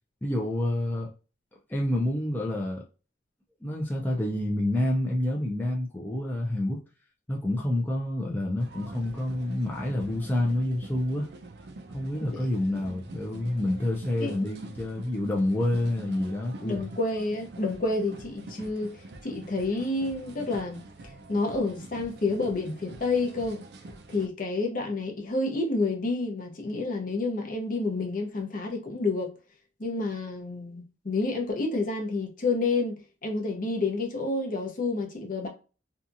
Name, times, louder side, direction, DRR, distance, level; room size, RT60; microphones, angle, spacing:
voice 1, 0.2-1.1 1.7-2.8 3.6-6.8 7.3-11.3 11.9-16.9, left 1 dB, 10° left, 0.4 m, -28 dB
sound 1, 8.6-24.3, right 2 dB, 60° right, 0.4 m, -45 dB
voice 2, 16.6-23.6 24.1-29.3 29.8-35.5, left 3 dB, 45° left, 0.7 m, -29 dB
2.7 x 2.3 x 2.5 m
head